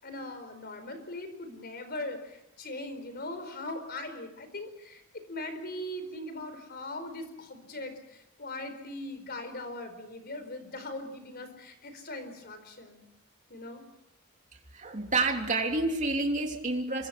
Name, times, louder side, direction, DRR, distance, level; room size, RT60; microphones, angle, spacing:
voice 1, 0.0-13.1 13.5-13.8, left 1 dB, 45° left, 9 dB, 4.6 m, -40 dB
voice 2, 14.7-17.1, right 3 dB, 35° right, 2 dB, 3.3 m, -29 dB
28.0 x 24.0 x 6.1 m, 0.83 s
head